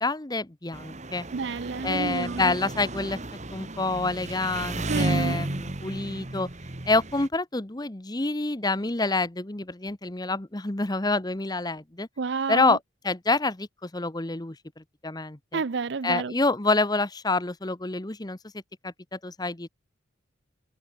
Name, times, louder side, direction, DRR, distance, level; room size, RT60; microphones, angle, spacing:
voice 1, 0.0-1.3 1.8-3.2 3.5-6.5 6.9-12.1 12.5-12.8 13.0-15.6 16.0-18.4 18.8-19.7, left 3 dB, 20° left, 1.0 m, -27 dB
Engine, 0.7-7.3, right 1 dB, 35° right, 1.7 m, -33 dB
voice 2, 1.3-2.6 4.9-5.4 12.2-12.8 15.5-16.3, right 4 dB, 60° right, 0.6 m, -29 dB
head